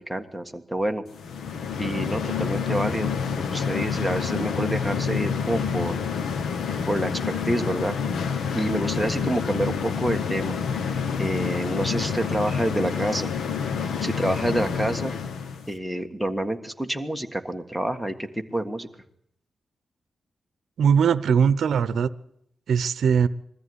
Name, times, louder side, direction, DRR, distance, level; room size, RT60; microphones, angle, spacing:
voice 1, 0.1-1.0 1.8-6.0 6.9-8.0 8.5-10.6 11.2-13.3 14.0-15.1 15.7-18.9, right 1 dB, ahead, 8 dB, 1.7 m, -28 dB
sound 1, 1.1-15.7, left 6 dB, 85° left, 1.5 m, -28 dB
voice 2, 20.8-22.1 22.7-23.3, right 7 dB, 80° right, 16 dB, 0.8 m, -20 dB
22.0 x 14.0 x 9.7 m, 0.73 s
wide cardioid pair, 110°, 0 cm